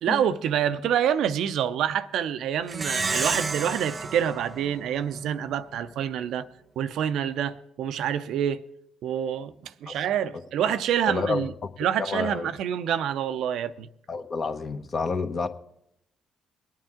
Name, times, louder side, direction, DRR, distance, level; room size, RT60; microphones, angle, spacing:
voice 1, 0.0-6.5 6.8-8.6 9.0-11.5 11.8-13.9, right 9 dB, 70° right, 0.5 m, -27 dB
Plucked string instrument, 2.7-5.5, right 4 dB, 35° right, 0.8 m, -31 dB
voice 2, 11.1-11.4 12.0-12.5 14.1-15.5, left 4 dB, 45° left, 1.2 m, -29 dB
23.5 x 9.1 x 3.7 m
hypercardioid pair, 55°, 0 cm